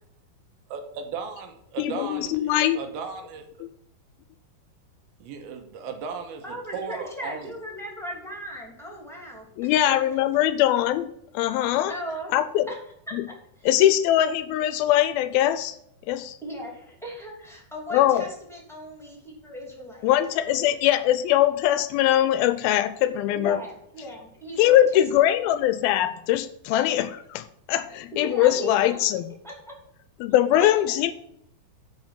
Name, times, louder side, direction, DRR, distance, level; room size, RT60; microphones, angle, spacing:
voice 1, 0.7-3.5 5.2-7.5, right 5 dB, 75° right, 5 dB, 2.9 m, -36 dB
voice 2, 1.8-2.8 9.6-11.9 12.3-12.7 13.1-13.3 13.7-15.8 16.1-16.4 17.9-18.3 20.0-23.6 24.6-29.3 30.2-31.1, left 12 dB, 85° left, 12 dB, 2.3 m, -22 dB
voice 3, 6.4-9.9 11.9-12.3 12.7-12.8 13.1-13.7 16.4-20.1 23.3-25.4 28.1-29.7 30.6-31.1, equal, ahead, -1 dB, 1.8 m, -38 dB
8.9 x 5.2 x 7.4 m, 0.74 s
omnidirectional pair, 4.4 m